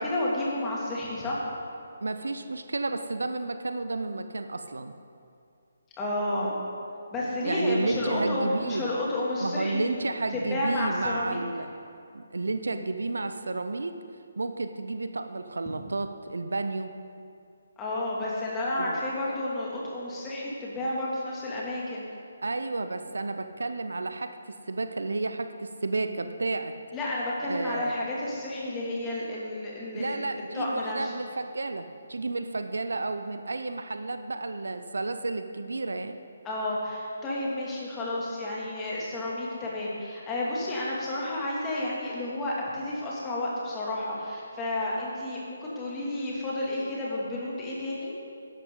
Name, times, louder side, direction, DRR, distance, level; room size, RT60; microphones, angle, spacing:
voice 1, 0.0-1.4 6.0-6.5 7.1-9.9 10.3-11.4 17.8-22.1 26.9-30.3 30.5-31.1 36.4-48.1, left 1 dB, 15° left, -5 dB, 2.6 m, -31 dB
voice 2, 2.0-4.9 7.4-8.9 9.4-11.7 12.1-14.0 14.4-16.9 18.8-19.0 22.4-26.7 27.5-27.9 29.9-36.2, right 3 dB, 70° right, 9 dB, 0.7 m, -31 dB
13.5 x 11.5 x 3.9 m, 2.5 s
figure-of-eight pair, 145°, 0 cm